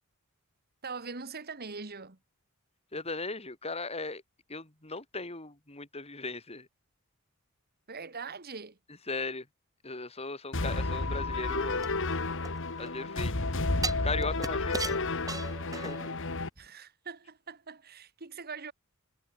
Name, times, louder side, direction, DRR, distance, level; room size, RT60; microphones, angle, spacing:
voice 1, 0.8-2.2 7.9-8.8 16.6-18.7, right 4 dB, 45° right, 2.0 m, -42 dB
voice 2, 2.9-4.2 4.5-6.7 9.1-9.5 9.8-11.9 12.8-13.3 14.0-15.1 15.7-16.3, left 3 dB, 30° left, 4.2 m, -37 dB
sound 1, 10.5-16.5, left 3 dB, 60° left, 2.0 m, -31 dB
sound 2, 11.8-13.0 13.8-16.2 16.6-16.7, right 3 dB, 15° right, 4.1 m, -38 dB
head